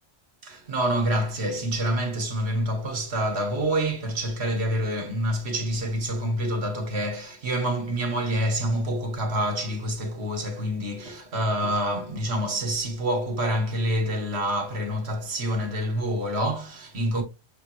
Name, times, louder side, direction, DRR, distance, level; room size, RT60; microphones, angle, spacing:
voice 1, 0.4-17.2, right 1 dB, 70° right, 1.4 m, -27 dB
6.7 x 2.9 x 2.5 m
omnidirectional pair, 1.1 m